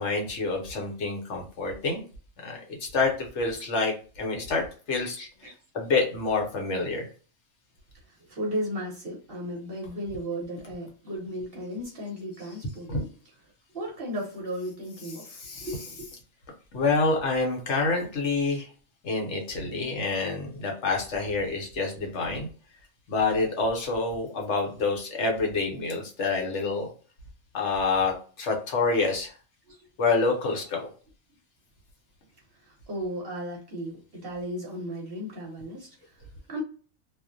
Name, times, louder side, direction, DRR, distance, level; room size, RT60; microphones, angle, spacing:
voice 1, 0.0-2.0 2.4-5.3 5.7-7.1 12.9-13.0 15.4-15.7 16.7-18.7 19.0-22.5 23.1-26.9 27.5-29.3 30.0-30.9, left 3 dB, 65° left, 0.9 m, -27 dB
voice 2, 8.1-13.1 13.7-16.0 29.7-29.9 32.5-36.6, equal, 50° right, 0.9 m, -35 dB
2.4 x 2.1 x 2.5 m
omnidirectional pair, 1.4 m